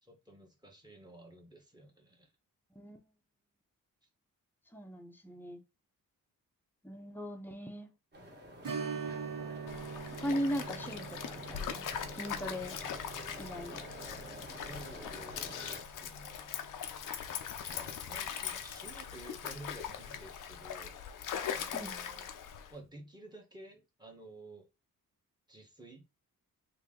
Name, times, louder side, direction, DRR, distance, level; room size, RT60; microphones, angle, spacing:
voice 1, 0.0-2.3 13.7-16.6 17.7-21.0 21.5-22.3 22.7-24.7 25.5-26.0, right 1 dB, 10° right, 1.1 m, -52 dB
voice 2, 2.8-3.1 4.7-5.6 6.8-7.9 10.1-12.7 13.4-13.8 21.7-21.9, equal, 5° left, 0.7 m, -39 dB
sound 1, 8.1-15.8, equal, 30° right, 1.3 m, -49 dB
Strum, 8.6-17.8 18.1-18.2 20.8-21.0 21.4-21.5, right 6 dB, 75° right, 1.4 m, -45 dB
Stream, 9.7-22.7, left 8 dB, 70° left, 0.5 m, -41 dB
2.9 x 2.7 x 3.7 m
wide cardioid pair, 115°, 33 cm